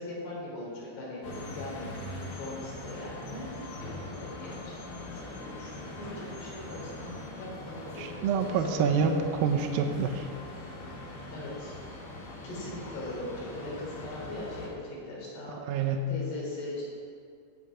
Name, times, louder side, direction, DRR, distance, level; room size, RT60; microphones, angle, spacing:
voice 1, 0.0-3.8 4.1-9.2 11.3-11.8 12.4-16.8, left 1 dB, 70° left, -5 dB, 5.4 m, -40 dB
sound 1, 1.2-14.7, left 2 dB, 85° left, 4.9 m, -42 dB
voice 2, 8.0-10.3 15.6-16.1, right 5 dB, 75° right, 5 dB, 2.2 m, -27 dB
16.5 x 8.9 x 4.9 m, 2.2 s
omnidirectional pair, 4.9 m